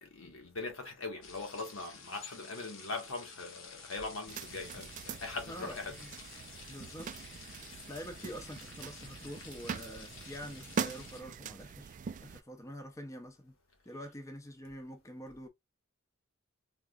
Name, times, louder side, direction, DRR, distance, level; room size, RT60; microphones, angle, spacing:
voice 1, 0.0-5.9, left 3 dB, 90° left, 1.3 m, -41 dB
sound 1, 1.2-11.2, left 5 dB, 65° left, 1.0 m, -51 dB
sound 2, 4.3-12.4, right 6 dB, 40° right, 0.3 m, -42 dB
voice 2, 5.5-6.1 6.7-7.1 7.9-13.6 13.9-15.5, equal, 15° left, 0.6 m, -46 dB
3.5 x 3.0 x 2.3 m
head